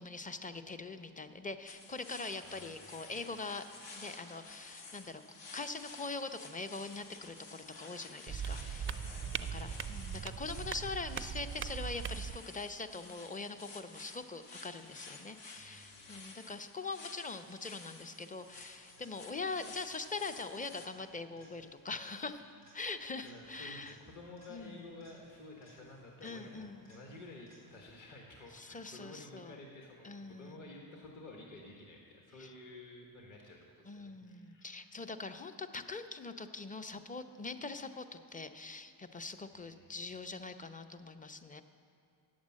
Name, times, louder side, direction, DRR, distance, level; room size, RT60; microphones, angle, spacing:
voice 1, 0.0-3.6 4.0-5.2 5.5-8.9 9.2-24.0 24.5-24.8 26.2-26.9 28.5-29.6 30.0-30.7 32.4-32.5 33.8-41.6, left 3 dB, 20° left, 9 dB, 0.6 m, -43 dB
sound 1, 1.7-20.9, left 3 dB, 70° left, 1.2 m, -52 dB
voice 2, 2.4-2.9 8.5-10.0 15.5-16.2 23.2-35.1 39.5-40.0, left 2 dB, 45° left, 0 dB, 1.5 m, -52 dB
sound 2, 8.3-12.4, right 7 dB, 30° right, 0.4 m, -40 dB
sound 3, 18.4-28.0 36.0-36.1, right 1 dB, 90° left, 2.8 m, -64 dB
8.9 x 7.3 x 7.4 m, 2.7 s
cardioid pair, 60°, 44 cm